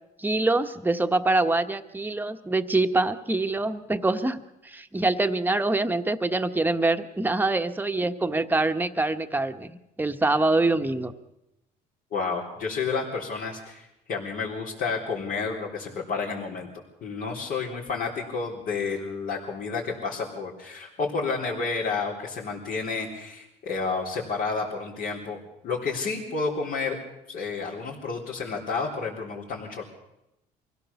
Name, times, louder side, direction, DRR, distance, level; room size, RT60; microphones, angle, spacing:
voice 1, 0.2-11.1, right 2 dB, 10° right, 7 dB, 1.2 m, -25 dB
voice 2, 12.1-16.7 17.0-25.4 25.6-27.0 27.3-29.8, left 4 dB, 60° left, -4 dB, 3.9 m, -30 dB
24.5 x 16.5 x 7.1 m, 0.89 s
cardioid pair, 110°, 17 cm